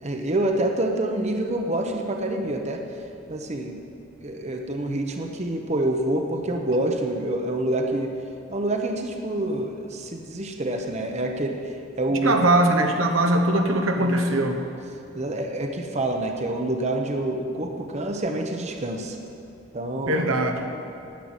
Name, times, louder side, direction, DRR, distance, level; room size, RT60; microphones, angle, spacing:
voice 1, 0.0-2.8 3.3-3.8 4.2-8.1 8.5-12.4 14.0-14.2 15.1-19.2 19.7-20.3, right 1 dB, 35° right, 3 dB, 0.8 m, -27 dB
voice 2, 12.2-14.6 20.1-20.7, right 1 dB, 85° right, 4 dB, 1.1 m, -21 dB
10.5 x 7.7 x 8.8 m, 2.7 s
head